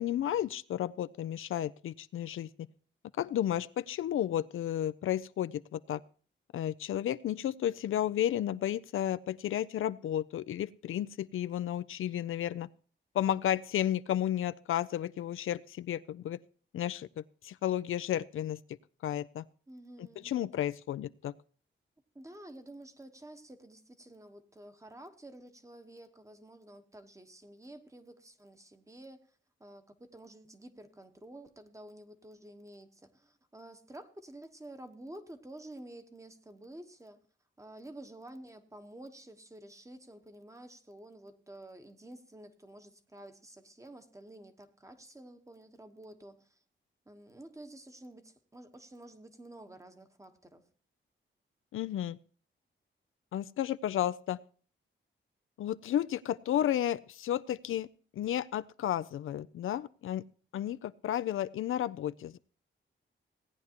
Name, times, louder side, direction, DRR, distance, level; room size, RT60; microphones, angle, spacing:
voice 1, 0.0-2.5 3.2-6.0 6.5-12.7 13.1-16.4 16.7-18.6 19.0-19.4 20.2-21.3 51.7-52.2 53.3-54.4 55.6-57.9 58.1-60.2 60.5-62.4, left 11 dB, 80° left, 14 dB, 0.4 m, -32 dB
voice 2, 19.7-20.3 22.1-29.2 29.6-37.2 37.6-46.6 47.1-50.6, right 1 dB, 15° right, 7 dB, 1.1 m, -50 dB
17.5 x 9.5 x 2.9 m, 0.42 s
cardioid pair, 100°, 21 cm